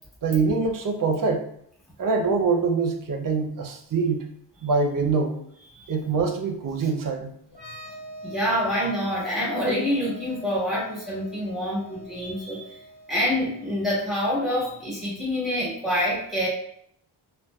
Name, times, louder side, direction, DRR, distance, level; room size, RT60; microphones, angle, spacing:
voice 1, 0.2-1.5 2.0-4.3 4.6-5.4 5.9-7.3, right 4 dB, 50° right, 4 dB, 0.5 m, -24 dB
sound 1, 7.5-15.0, right 1 dB, 25° left, 1.3 m, -44 dB
voice 2, 8.2-12.8 13.1-16.5, equal, ahead, -7 dB, 1.2 m, -26 dB
2.5 x 2.2 x 2.2 m, 0.70 s
cardioid pair, 75°, 43 cm